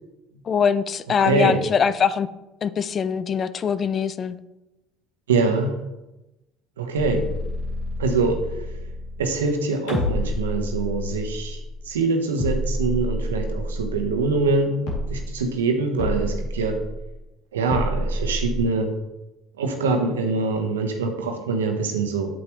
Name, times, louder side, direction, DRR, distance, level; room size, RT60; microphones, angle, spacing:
voice 1, 0.5-2.3 2.6-4.4, left 7 dB, 40° left, 16 dB, 0.4 m, -22 dB
voice 2, 1.2-1.6 5.3-5.8 6.8-7.3 8.0-8.7 9.2-11.6 11.9-16.8 17.5-18.9 19.6-22.4, right 3 dB, 90° right, 3 dB, 1.1 m, -24 dB
sound 1, 6.9-9.5 9.9-12.0 12.4-14.6 14.9-15.5 16.0-17.2 17.7-18.6, left 1 dB, 75° left, 2.6 m, -29 dB
8.6 x 7.7 x 3.1 m, 0.99 s
hypercardioid pair, 70°, 0 cm